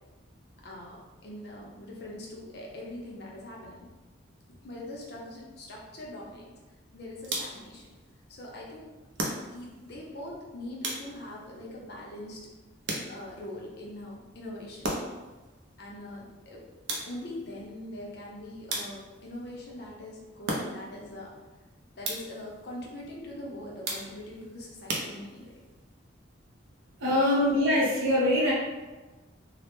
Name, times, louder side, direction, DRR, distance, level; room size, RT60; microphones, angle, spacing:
voice 1, 0.6-3.9 4.6-7.9 8.3-8.9 9.5-12.5 13.1-14.9 15.8-16.6 17.1-21.3 22.0-25.5 27.0-27.2, left 1 dB, 50° left, -2 dB, 0.5 m, -42 dB
sound 1, 7.2-7.8 9.2-9.8 10.8-11.4 12.9-13.5 14.8-15.3 16.9-17.4 18.7-19.3 20.5-21.0 22.0-22.5 23.8-24.4 24.9-25.6, right 2 dB, 65° right, 0.4 m, -35 dB
voice 2, 27.0-28.5, left 1 dB, 80° right, -6 dB, 0.9 m, -23 dB
2.1 x 2.0 x 3.0 m, 1.2 s
head